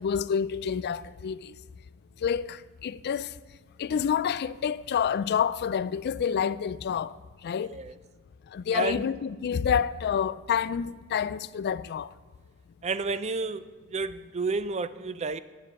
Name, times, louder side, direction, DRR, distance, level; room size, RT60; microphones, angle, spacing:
voice 1, 0.0-1.5 2.2-3.3 3.8-7.2 7.4-7.8 8.5-12.1, left 7 dB, 50° left, 0.3 m, -28 dB
voice 2, 7.6-7.9 8.7-9.0 12.8-13.6 13.9-15.4, right 4 dB, 30° right, 0.4 m, -30 dB
9.7 x 7.4 x 8.1 m
head